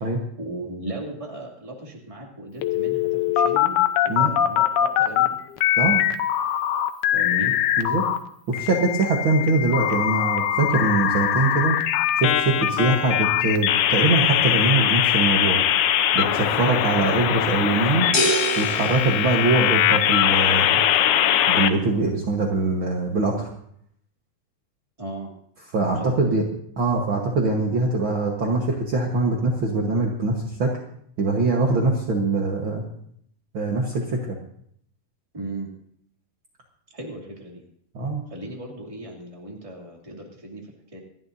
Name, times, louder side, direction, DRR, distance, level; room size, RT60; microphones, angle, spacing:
voice 1, 0.4-5.4 7.1-7.5 25.0-25.3 26.0-26.4 35.3-35.7 36.9-37.6 38.3-40.6 40.9-41.0, right 1 dB, 10° right, 0 dB, 1.6 m, -36 dB
sound 1, 2.6-5.3 5.6-8.2 8.5-21.7, left 11 dB, 90° left, 2.7 m, -21 dB
voice 2, 7.8-8.1 8.5-11.8 12.2-15.6 16.1-18.1 18.6-20.8 21.5-23.5 25.7-26.4 26.8-30.8 31.2-32.8 33.5-34.3 37.9-38.2, right 3 dB, 75° right, 0 dB, 1.1 m, -23 dB
sound 2, 18.1-20.2, equal, 35° left, 2.0 m, -26 dB
27.5 x 11.5 x 2.7 m, 0.67 s
omnidirectional pair, 4.4 m